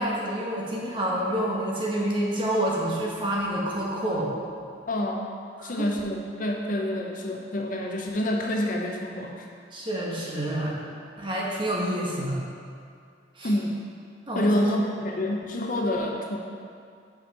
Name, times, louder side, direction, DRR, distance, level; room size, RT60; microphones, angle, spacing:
voice 1, 0.0-4.3 5.6-5.9 9.7-10.7 11.2-12.4 13.4-13.5 14.3-14.8, right 1 dB, 25° right, -4 dB, 1.1 m, -28 dB
voice 2, 4.9-5.4 5.6-9.5 13.4-13.8 14.3-16.4, left 1 dB, 45° left, 1 dB, 0.6 m, -27 dB
5.6 x 5.2 x 5.2 m, 2.3 s
head